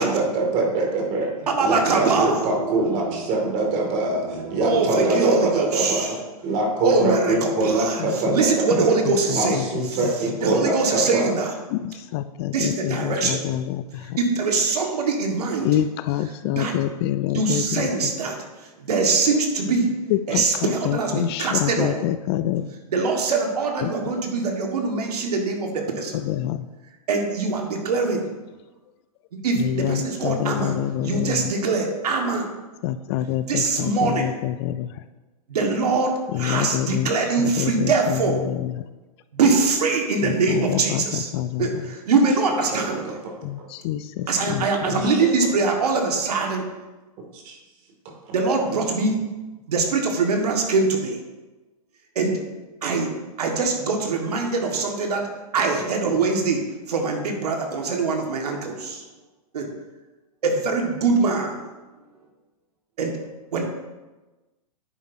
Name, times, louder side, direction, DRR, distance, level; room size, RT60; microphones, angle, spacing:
voice 1, 0.0-1.3 1.6-6.2 6.4-9.0 9.3-11.3 42.7-43.1 44.8-45.3 47.3-47.6, right 2 dB, 40° right, 1 dB, 2.4 m, -24 dB
voice 2, 1.5-3.2 3.4-3.7 4.1-6.1 6.8-9.7 10.4-11.5 12.5-13.5 14.2-15.7 16.4-16.7 17.3-19.9 20.3-22.0 22.9-26.2 27.1-28.3 29.4-30.7 31.0-32.5 33.4-34.3 35.5-38.4 39.3-41.3 41.6-43.1 44.3-46.6 48.3-49.2 49.7-51.2 52.2-52.3 52.8-53.1 53.4-55.3 55.5-56.6 56.9-59.0 59.5-59.7 60.4-61.6 63.0-63.2 63.5-63.6, right 4 dB, 75° right, 2 dB, 1.8 m, -23 dB
voice 3, 8.0-8.4 8.7-8.8 9.1-10.1 11.7-14.2 15.6-17.9 20.1-22.7 23.8-24.1 26.1-26.7 29.6-31.5 32.8-35.0 36.3-37.1 37.4-38.8 40.2-41.8 43.4-45.0, left 12 dB, 40° left, 12 dB, 0.4 m, -27 dB
10.0 x 8.3 x 2.8 m, 1.1 s
hypercardioid pair, 125°, 20 cm